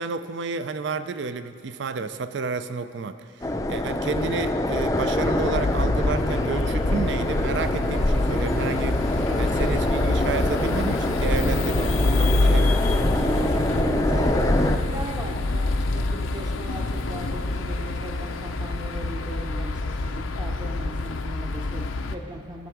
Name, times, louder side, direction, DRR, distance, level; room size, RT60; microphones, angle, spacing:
voice 1, 0.0-9.0 9.4-12.9, right 5 dB, 65° right, 11 dB, 0.4 m, -31 dB
sound 1, 3.4-14.8, left 1 dB, 15° left, 0.4 m, -24 dB
sound 2, 5.5-22.2, left 2 dB, 85° left, 0.6 m, -27 dB
voice 2, 8.9-9.6 13.1-22.7, right 1 dB, 20° right, 3 dB, 0.7 m, -36 dB
17.5 x 6.8 x 4.7 m, 2.3 s
head